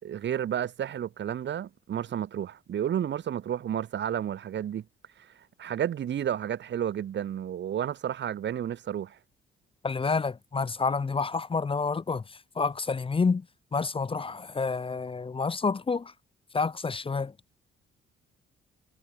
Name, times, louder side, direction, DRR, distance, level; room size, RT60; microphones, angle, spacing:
voice 1, 0.0-4.8 5.2-5.3 5.6-9.2, right 10 dB, 65° right, 5.3 m, -31 dB
voice 2, 9.8-12.2 12.6-13.4 13.7-16.1 16.5-17.3, left 4 dB, 25° left, 1.0 m, -28 dB
cardioid pair, 90°, 20 cm